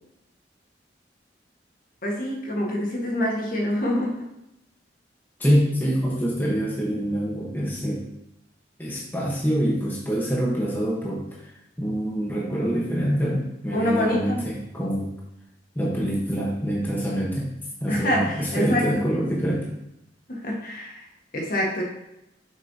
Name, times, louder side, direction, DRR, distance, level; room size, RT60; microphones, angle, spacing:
voice 1, 2.0-4.2 13.7-14.5 17.9-19.0 20.3-21.0 21.3-21.8, left 1 dB, 50° left, -2 dB, 1.5 m, -25 dB
voice 2, 5.4-8.0 8.8-11.5 11.8-15.1 15.7-17.5 17.8-19.7, equal, 10° left, -4 dB, 1.1 m, -25 dB
7.3 x 6.1 x 2.8 m, 0.87 s
head